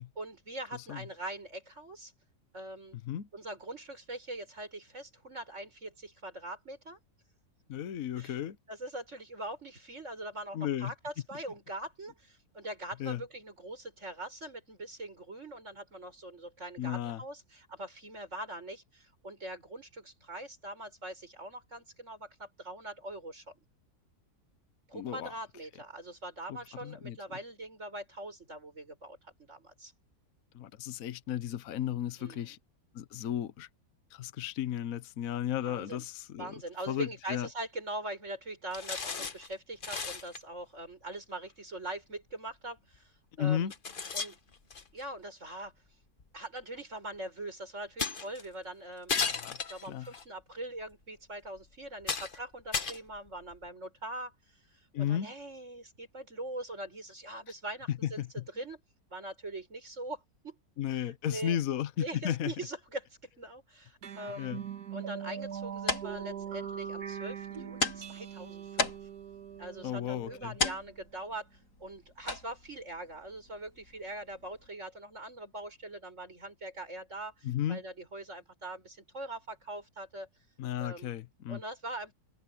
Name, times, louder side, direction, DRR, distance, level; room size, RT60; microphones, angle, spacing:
voice 1, 0.2-2.1 2.5-3.0 3.3-7.0 8.2-8.4 8.7-23.6 24.9-29.9 32.2-32.6 35.6-36.0 36.4-43.7 44.1-44.4 44.9-45.7 46.3-49.2 49.7-54.3 54.7-58.8 59.1-60.6 60.9-61.6 62.0-63.1 63.4-64.6 64.9-69.0 69.6-80.3 80.8-81.1 81.5-82.1, right 1 dB, 45° right, 7.1 m, -42 dB
voice 2, 0.7-1.0 3.0-3.3 7.7-8.6 10.5-10.9 13.0-13.2 16.8-17.2 24.9-25.3 26.5-27.2 30.5-32.6 32.9-33.7 34.1-36.5 36.9-37.5 43.4-43.7 49.2-49.6 49.9-50.1 54.9-55.3 58.2-58.4 60.8-62.5 64.4-64.6 69.8-70.5 77.4-77.8 80.6-81.6, left 10 dB, 60° left, 1.2 m, -34 dB
sound 1, 38.7-39.5 39.8-40.4 41.9-42.0 42.9-43.0 43.7-45.0 46.2-46.3 48.0-48.5 49.1-50.2 50.9-51.0 51.6-51.7 52.0-52.4 52.7-53.7, left 5 dB, 35° left, 1.2 m, -35 dB
sound 2, 64.0-70.9, right 8 dB, 75° right, 1.9 m, -41 dB
sound 3, 65.4-74.7, left 3 dB, 80° left, 4.2 m, -39 dB
omnidirectional pair, 1.7 m